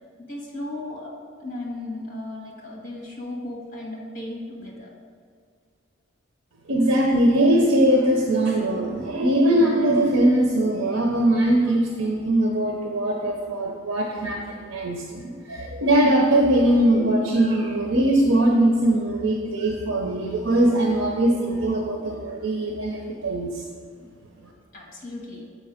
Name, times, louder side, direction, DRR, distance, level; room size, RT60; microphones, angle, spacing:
voice 1, 0.2-1.1 1.4-4.9 24.7-25.4, left 2 dB, 45° left, -2 dB, 1.5 m, -35 dB
voice 2, 6.7-15.2 15.5-23.6, right 1 dB, 90° right, 0 dB, 0.6 m, -21 dB
6.4 x 5.2 x 5.0 m, 2.1 s
head